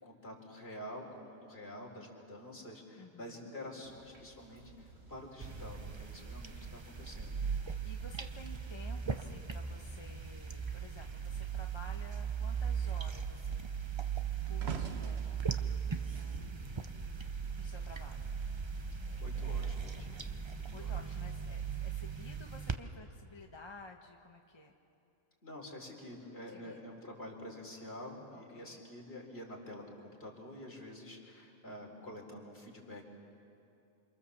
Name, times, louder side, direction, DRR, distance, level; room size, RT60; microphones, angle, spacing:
voice 1, 0.0-7.4 19.2-20.3 20.7-20.9 25.4-33.1, left 1 dB, 45° left, -1 dB, 4.2 m, -48 dB
voice 2, 3.0-3.5 7.6-14.0 14.5-15.5 16.0-16.6 17.6-18.3 20.7-24.7 26.5-26.9 28.3-28.8, left 2 dB, 20° left, 2 dB, 1.0 m, -53 dB
sound 1, 3.8-22.9, right 2 dB, 75° right, 3.0 m, -59 dB
sound 2, 5.4-22.8, right 6 dB, 30° right, 0.6 m, -38 dB
sound 3, 8.4-11.1 11.4-11.8 12.1-17.4 18.2-18.4, right 6 dB, 50° right, 1.2 m, -48 dB
28.0 x 26.5 x 7.2 m, 2.7 s
omnidirectional pair, 1.4 m